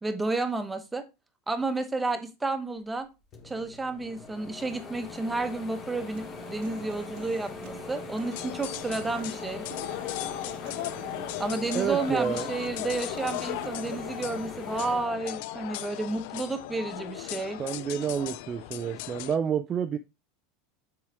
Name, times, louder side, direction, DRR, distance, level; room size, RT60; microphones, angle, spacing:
voice 1, 0.0-1.0 1.5-3.1 3.4-9.6 11.4-17.6, right 3 dB, 10° right, 0.9 m, -31 dB
sound 1, 3.0-3.1 3.3-15.9 16.4-17.5, left 3 dB, 25° left, 1.2 m, -42 dB
Human voice / Acoustic guitar, 6.1-14.1, right 13 dB, 65° right, 0.9 m, -49 dB
sound 2, 8.3-19.4, left 16 dB, 65° left, 0.3 m, -37 dB
voice 2, 11.7-12.5 17.6-20.0, right 7 dB, 25° right, 0.4 m, -29 dB
7.3 x 4.8 x 3.3 m
supercardioid pair, 145°, 0 cm